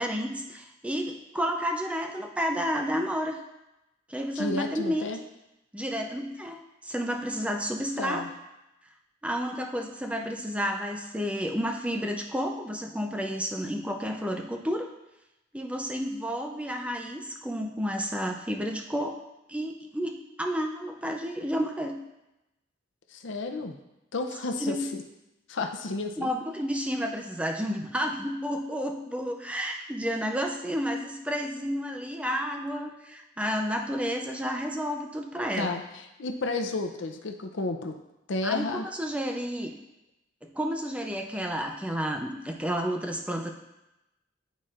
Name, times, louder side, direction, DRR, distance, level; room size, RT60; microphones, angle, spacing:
voice 1, 0.0-3.4 4.1-5.1 5.7-8.2 9.2-14.9 15.5-19.2 19.5-21.9 24.6-24.9 26.2-35.8 38.4-39.7 40.4-43.5, equal, 5° right, 3 dB, 0.5 m, -31 dB
voice 2, 4.4-5.2 8.0-8.3 23.1-23.8 24.1-25.0 25.5-26.3 35.5-35.8 36.2-37.9 38.3-38.9, left 3 dB, 75° left, 6 dB, 0.6 m, -31 dB
10.5 x 4.1 x 2.5 m, 0.94 s
head